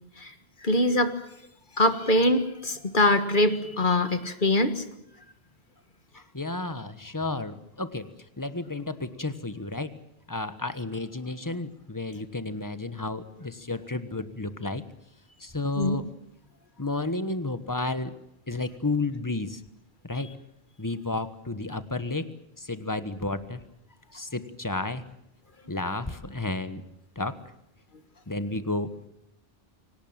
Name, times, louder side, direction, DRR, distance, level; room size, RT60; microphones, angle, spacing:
voice 1, 0.6-1.1 1.8-4.8 15.8-16.0, left 1 dB, 55° left, 9 dB, 1.8 m, -23 dB
voice 2, 6.1-8.1 8.4-10.0 10.3-14.8 15.4-16.1 16.8-18.2 18.5-19.6 20.0-20.3 20.8-22.3 22.6-23.6 24.1-25.0 25.7-26.8 27.1-27.4 28.3-28.9, left 2 dB, 20° left, 11 dB, 1.4 m, -32 dB
24.0 x 18.0 x 9.0 m, 0.79 s
omnidirectional pair, 1.0 m